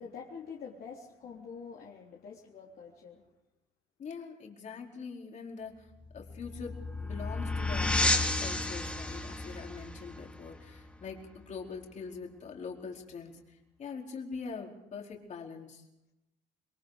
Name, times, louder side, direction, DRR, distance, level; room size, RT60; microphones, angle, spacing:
voice 1, 0.0-3.2, left 6 dB, 60° left, -3 dB, 3.6 m, -46 dB
voice 2, 4.0-5.9 6.1-15.9, left 5 dB, 45° left, 1 dB, 4.7 m, -43 dB
sound 1, 6.0-11.4, left 2 dB, 5° left, 2.6 m, -32 dB
27.0 x 23.0 x 5.2 m, 0.88 s
cardioid pair, 110°, 17 cm